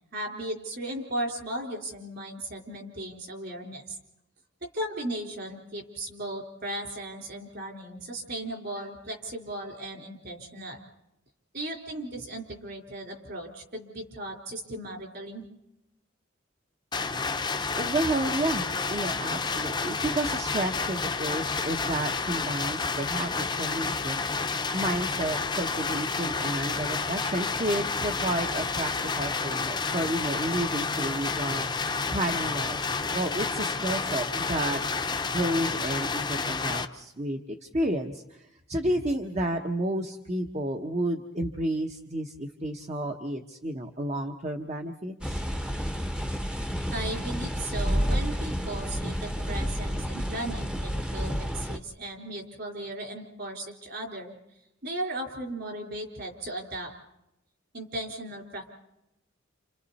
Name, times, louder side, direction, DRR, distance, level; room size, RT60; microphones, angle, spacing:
voice 1, 0.1-4.0 4.6-10.8 11.5-15.5 46.9-54.3 54.8-56.9 57.7-58.7, right 1 dB, 55° right, 1 dB, 4.2 m, -36 dB
sound 1, 16.9-36.9, left 4 dB, 20° left, 0.8 m, -30 dB
voice 2, 17.7-24.5 24.7-28.9 29.2-31.7 32.1-34.8 35.3-45.4, right 1 dB, 35° right, 4 dB, 1.1 m, -31 dB
sound 2, 45.2-51.8, equal, 5° right, 0.9 m, -30 dB
29.0 x 28.5 x 4.2 m, 0.88 s
head